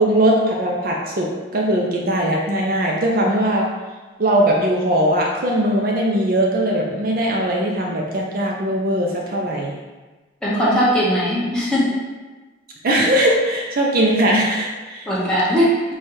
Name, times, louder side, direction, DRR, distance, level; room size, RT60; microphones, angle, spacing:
voice 1, 0.0-3.7 4.2-9.7 12.8-15.1, right 1 dB, 50° right, -1 dB, 0.5 m, -20 dB
voice 2, 10.4-11.9 15.1-15.9, equal, 5° left, -8 dB, 1.1 m, -19 dB
4.3 x 2.4 x 4.7 m, 1.2 s
head